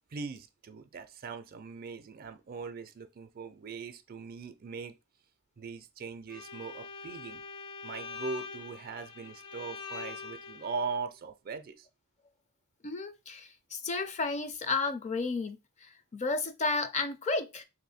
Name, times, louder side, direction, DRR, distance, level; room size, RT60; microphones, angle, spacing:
voice 1, 0.1-4.9 5.6-7.4 7.8-11.9, right 4 dB, 45° right, 0.4 m, -40 dB
Bowed string instrument, 6.3-11.0, left 4 dB, 75° left, 0.7 m, -44 dB
voice 2, 12.8-17.6, left 3 dB, 35° left, 0.5 m, -33 dB
3.3 x 2.7 x 4.1 m
head